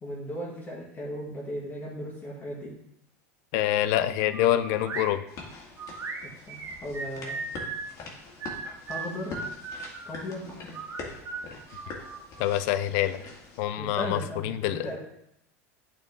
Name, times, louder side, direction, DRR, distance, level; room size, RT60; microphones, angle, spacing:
voice 1, 0.0-2.7 6.2-7.4 8.1-8.3 8.9-9.4 10.1-10.8 13.8-15.0, left 1 dB, 20° left, -4 dB, 2.3 m, -37 dB
voice 2, 3.5-5.2 12.4-13.2 13.6-14.9, left 12 dB, 65° left, 13 dB, 0.5 m, -26 dB
sound 1, 4.3-5.1 5.8-7.9 8.4-10.2 10.7-12.6, right 4 dB, 35° right, 1.2 m, -37 dB
sound 2, 5.3-13.6, left 3 dB, 45° left, 2.0 m, -44 dB
8.7 x 4.3 x 3.7 m, 0.77 s
hypercardioid pair, 100°, 8 cm